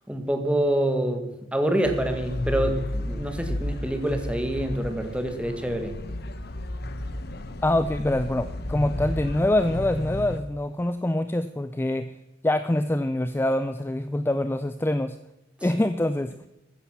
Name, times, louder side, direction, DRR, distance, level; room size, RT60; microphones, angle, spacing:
voice 1, 0.1-6.0, right 1 dB, 5° right, 6 dB, 1.5 m, -26 dB
sound 1, 1.8-10.4, left 1 dB, 55° left, 0.9 m, -33 dB
voice 2, 7.6-12.1 12.4-15.2 15.6-16.3, left 1 dB, 10° left, 11 dB, 0.4 m, -25 dB
14.0 x 9.8 x 5.8 m, 0.93 s
head